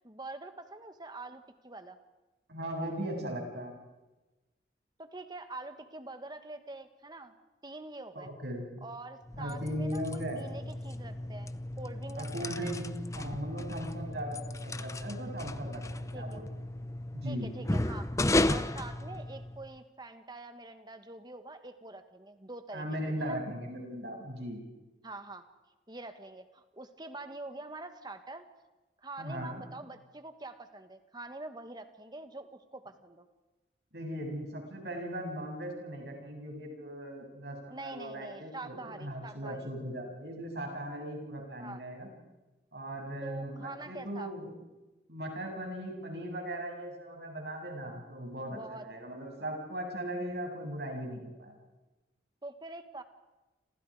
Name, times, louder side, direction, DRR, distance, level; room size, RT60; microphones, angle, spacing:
voice 1, 0.0-2.0 5.0-7.3 7.6-8.3 8.8-11.5 11.8-12.7 16.1-16.4 17.2-18.1 18.5-23.4 25.0-25.4 25.9-28.4 29.0-33.3 37.7-39.7 41.6-41.8 43.2-44.3 48.5-48.9 52.4-53.0, right 2 dB, 25° right, 8 dB, 1.7 m, -45 dB
voice 2, 2.5-3.7 8.2-8.9 9.4-10.4 12.2-16.6 17.1-17.5 22.7-24.6 29.2-29.7 33.9-42.1 42.7-44.5 45.1-51.6, equal, 65° right, 1 dB, 7.5 m, -38 dB
sound 1, 9.2-19.7, left 1 dB, 15° left, 0.7 m, -34 dB
29.0 x 27.0 x 5.0 m, 1.1 s
head